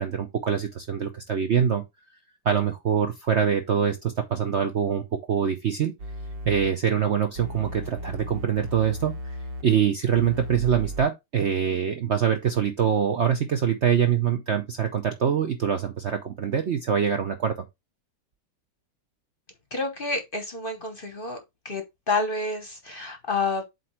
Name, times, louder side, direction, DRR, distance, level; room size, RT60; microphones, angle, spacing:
voice 1, 0.0-1.8 2.4-5.9 6.4-9.3 9.6-17.6, right 8 dB, 55° right, 0.8 m, -24 dB
sound 1, 6.0-6.7 7.4-9.6 10.2-11.0, equal, 85° right, 1.9 m, -35 dB
voice 2, 19.7-21.4 21.6-23.7, left 3 dB, 35° left, 1.0 m, -29 dB
7.9 x 3.1 x 4.4 m
omnidirectional pair, 1.9 m